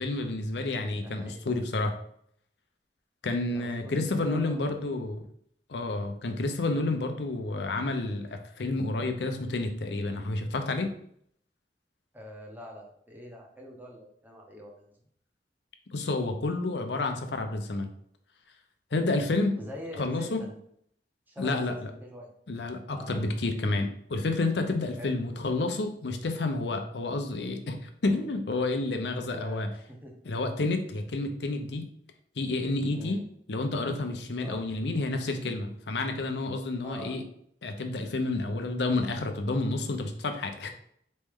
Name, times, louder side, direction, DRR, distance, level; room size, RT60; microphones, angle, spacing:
voice 1, 0.0-1.9 3.2-5.2 5.7-10.9 15.9-17.9 18.9-19.5 20.0-20.4 21.4-21.7 22.5-29.7 30.3-31.9 32.4-33.2 33.5-37.2 37.6-40.7, left 2 dB, 70° left, 6 dB, 0.6 m, -30 dB
voice 2, 0.9-1.4 3.5-4.7 12.1-14.9 19.6-20.6 21.3-22.3 22.9-23.2 25.0-25.2 29.3-30.1 32.9-33.2 34.4-34.6 36.8-37.2, equal, 10° right, 0 dB, 0.9 m, -44 dB
4.2 x 3.2 x 3.6 m, 0.66 s
head